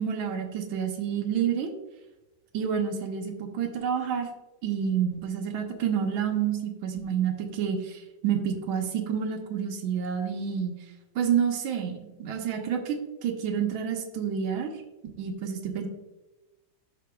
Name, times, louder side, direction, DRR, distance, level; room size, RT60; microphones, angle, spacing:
voice 1, 0.0-1.7 2.5-4.3 4.6-10.8 11.2-13.0 13.2-14.7 15.2-15.9, right 8 dB, 85° right, 3 dB, 1.7 m, -29 dB
13.5 x 5.1 x 2.3 m, 1.0 s
omnidirectional pair, 2.1 m